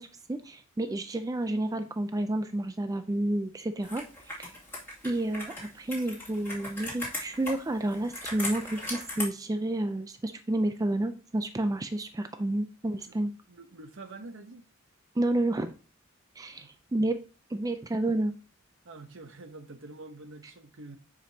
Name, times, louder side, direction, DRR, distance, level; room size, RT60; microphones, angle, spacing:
voice 1, 0.0-4.5 5.0-13.3 15.2-15.7 16.4-17.2 17.5-18.3, right 1 dB, 15° right, 0.4 m, -30 dB
Computer keyboard, 3.8-9.2, left 2 dB, 10° left, 2.3 m, -39 dB
voice 2, 13.5-14.7 16.6-16.7 18.8-21.0, right 2 dB, 65° right, 0.9 m, -46 dB
9.7 x 5.1 x 2.8 m
head